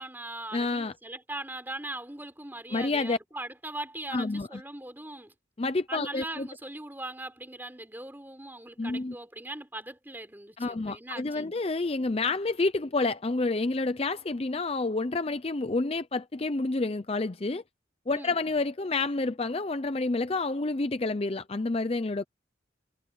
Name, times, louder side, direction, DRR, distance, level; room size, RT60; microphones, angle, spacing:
voice 1, 0.0-5.3 5.9-11.5 18.1-18.4, right 2 dB, 10° right, 3.8 m, -40 dB
voice 2, 0.5-0.9 2.7-3.2 4.1-4.6 5.6-6.5 8.8-9.1 10.6-17.6 18.1-22.2, left 3 dB, 30° left, 0.5 m, -29 dB
head